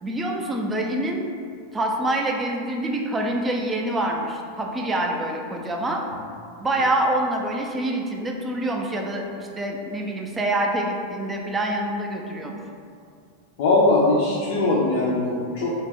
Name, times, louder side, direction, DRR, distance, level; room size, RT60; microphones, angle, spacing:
voice 1, 0.0-1.3 1.7-6.0 6.6-12.6, right 1 dB, 15° right, 0 dB, 0.3 m, -26 dB
voice 2, 13.6-15.7, left 2 dB, 70° left, -5 dB, 0.4 m, -20 dB
2.4 x 2.1 x 3.5 m, 2.3 s
supercardioid pair, 130°, 0 cm